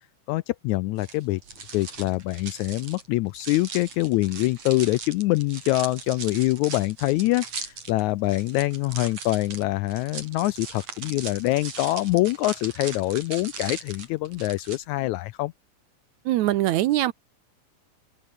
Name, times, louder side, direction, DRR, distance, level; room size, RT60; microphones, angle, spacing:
voice 1, 0.3-1.4 1.7-15.5, left 18 dB, 80° left, 1.7 m, -25 dB
sound 1, 1.0-14.8, right 5 dB, 55° right, 5.6 m, -39 dB
voice 2, 16.3-17.1, right 14 dB, 75° right, 2.0 m, -22 dB
open air
omnidirectional pair, 3.7 m